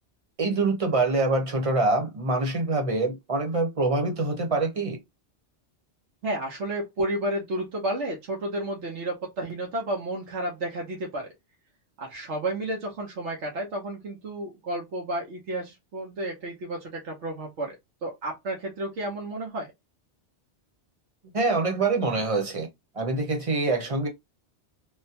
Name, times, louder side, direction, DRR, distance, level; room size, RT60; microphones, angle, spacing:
voice 1, 0.4-5.0 21.3-22.7 22.9-24.1, right 3 dB, 30° right, 0.9 m, -25 dB
voice 2, 6.2-11.3 12.0-17.8 18.0-19.7, right 1 dB, 90° right, 1.2 m, -31 dB
3.5 x 2.1 x 2.8 m
omnidirectional pair, 1.2 m